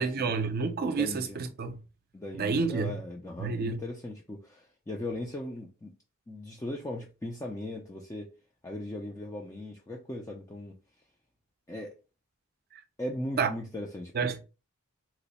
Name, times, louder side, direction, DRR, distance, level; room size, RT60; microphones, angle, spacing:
voice 1, 0.0-1.8 2.4-3.0 3.4-3.8 12.7-12.8 13.4-13.5 14.1-14.4, right 4 dB, 45° right, 0.5 m, -29 dB
voice 2, 1.0-1.4 2.1-5.9 6.3-8.3 8.6-10.8 11.7-12.0 13.0-14.4, left 1 dB, 15° left, 0.3 m, -38 dB
3.0 x 2.0 x 4.1 m
head